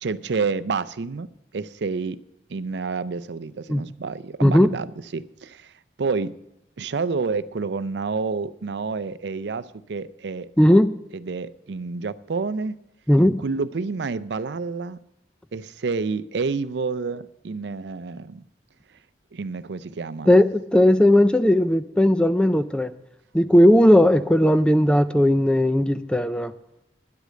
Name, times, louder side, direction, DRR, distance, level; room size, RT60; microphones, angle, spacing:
voice 1, 0.0-2.2 2.5-4.9 5.1-5.7 6.0-6.3 6.8-10.5 11.1-12.8 13.4-15.0 15.5-18.4 19.3-20.4, right 4 dB, 75° right, 0.5 m, -29 dB
voice 2, 4.4-4.7 10.6-10.9 13.1-13.4 20.3-22.9 23.3-26.5, left 1 dB, 5° left, 0.4 m, -17 dB
10.5 x 8.2 x 7.5 m
head